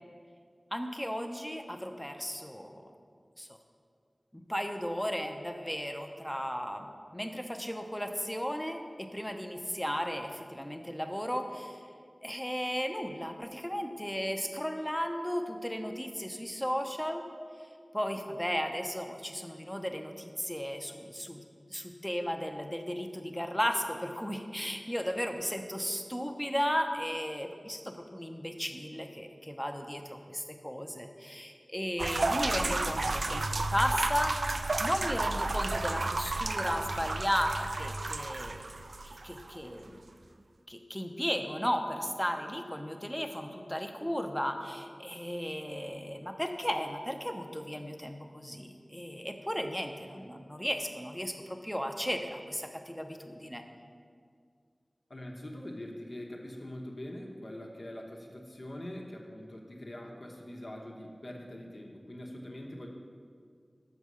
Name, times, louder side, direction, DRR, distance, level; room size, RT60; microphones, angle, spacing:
voice 1, 0.7-2.9 3.4-3.6 4.3-11.8 12.2-17.2 17.9-21.4 21.7-38.8 39.1-40.0 40.7-53.6, equal, 10° left, 5 dB, 0.7 m, -35 dB
sound 1, 32.0-39.6, right 2 dB, 85° right, 0.3 m, -32 dB
voice 2, 55.1-62.9, left 1 dB, 60° left, 0 dB, 1.1 m, -43 dB
7.0 x 5.5 x 6.2 m, 2.2 s
wide cardioid pair, 50°, 0 cm